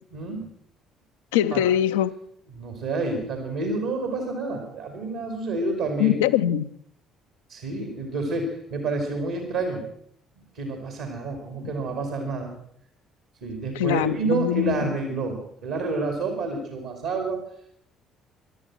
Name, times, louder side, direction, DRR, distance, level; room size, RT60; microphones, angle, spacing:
voice 1, 0.1-0.4 1.5-1.6 2.6-6.1 7.5-9.8 10.5-12.5 13.4-17.4, right 3 dB, 70° right, 4 dB, 2.5 m, -29 dB
voice 2, 1.3-2.1 6.0-6.7 11.6-11.7 13.7-14.9, left 11 dB, 75° left, 12 dB, 0.5 m, -23 dB
16.5 x 11.5 x 6.4 m, 0.69 s
figure-of-eight pair, 50°, 0 cm